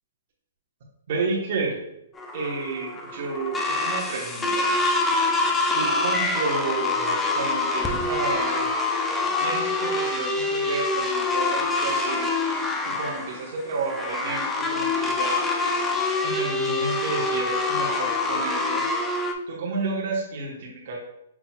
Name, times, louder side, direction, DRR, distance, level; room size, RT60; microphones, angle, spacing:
voice 1, 1.1-1.8 2.3-4.7 5.7-8.7 9.4-12.3 12.6-15.4 16.2-18.8 19.5-21.1, right 3 dB, 50° right, -4 dB, 1.1 m, -31 dB
sound 1, 2.2-19.3, left 3 dB, 10° left, 0.4 m, -25 dB
5.7 x 3.9 x 2.3 m, 0.78 s
hypercardioid pair, 160°, 0 cm